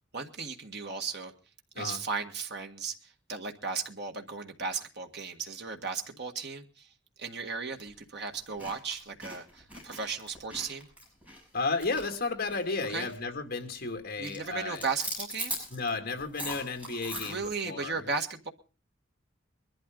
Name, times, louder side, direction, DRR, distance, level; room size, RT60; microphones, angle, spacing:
voice 1, 0.1-1.3 1.8-6.9 7.2-10.9 12.9-13.1 14.2-15.6 17.2-18.5, right 4 dB, 55° right, 4 dB, 1.7 m, -36 dB
sound 1, 7.7-7.9 8.3-12.8 13.0-13.3 13.6-14.0 14.2-17.5, equal, 5° right, 6.8 m, -40 dB
voice 2, 11.5-14.9 15.7-18.0, left 3 dB, 50° left, 6 dB, 2.6 m, -33 dB
22.5 x 12.0 x 3.9 m, 0.34 s
head